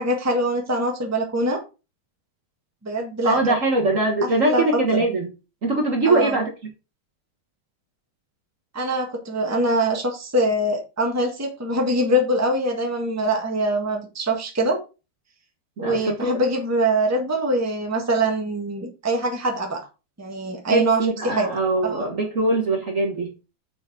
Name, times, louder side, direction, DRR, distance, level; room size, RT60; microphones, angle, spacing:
voice 1, 0.0-1.6 2.8-3.4 4.2-4.6 4.9-5.0 6.0-6.4 8.7-14.8 15.8-19.8 20.2-21.5 21.8-22.1, right 1 dB, 10° right, 1 dB, 1.4 m, -23 dB
voice 2, 3.2-5.3 5.6-6.5 15.8-16.3 20.7-23.3, right 2 dB, 40° right, 2 dB, 1.6 m, -22 dB
7.0 x 5.2 x 5.0 m, 0.30 s
omnidirectional pair, 2.3 m